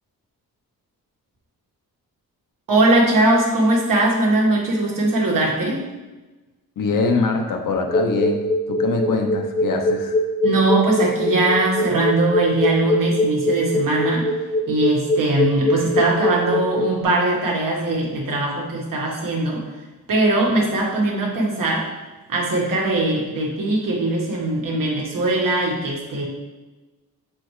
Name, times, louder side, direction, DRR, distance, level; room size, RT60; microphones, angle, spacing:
voice 1, 2.7-5.8 10.4-14.3 14.7-19.6 20.1-21.9 22.3-26.2, right 2 dB, 60° right, -3 dB, 1.5 m, -20 dB
voice 2, 6.8-8.4 8.7-10.2, left 4 dB, 60° left, 3 dB, 0.9 m, -23 dB
sound 1, 7.7-16.9, left 1 dB, 25° left, 0.7 m, -21 dB
6.9 x 4.3 x 3.2 m, 1.1 s
wide cardioid pair, 155°, 36 cm